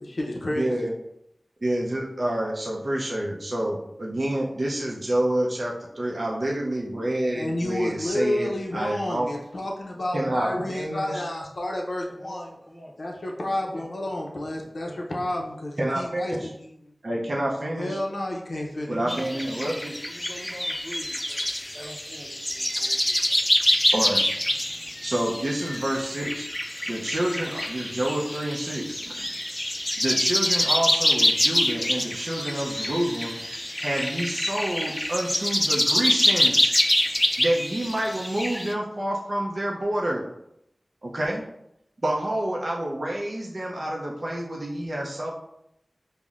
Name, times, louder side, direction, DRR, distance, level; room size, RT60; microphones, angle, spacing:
voice 1, 0.0-0.9 7.3-12.6 13.0-16.9 17.8-19.0, left 1 dB, 80° left, -1 dB, 0.5 m, -30 dB
voice 2, 0.6-0.9 1.6-9.3 10.1-11.1 15.8-16.5 17.0-18.0 18.9-19.9 23.9-24.2 25.0-26.5 26.9-29.3 30.0-33.4 33.8-36.7 37.4-40.2 41.0-41.4 42.0-45.3, right 1 dB, 60° right, -2 dB, 0.5 m, -28 dB
voice 3, 12.2-13.1 13.7-14.2 14.8-15.0 18.5-19.7 20.0-21.4 21.7-23.4, equal, 5° left, 0 dB, 0.7 m, -44 dB
sound 1, 19.1-38.7, left 1 dB, 20° left, 0.3 m, -26 dB
5.4 x 2.1 x 2.4 m, 0.80 s
wide cardioid pair, 45°, 0 cm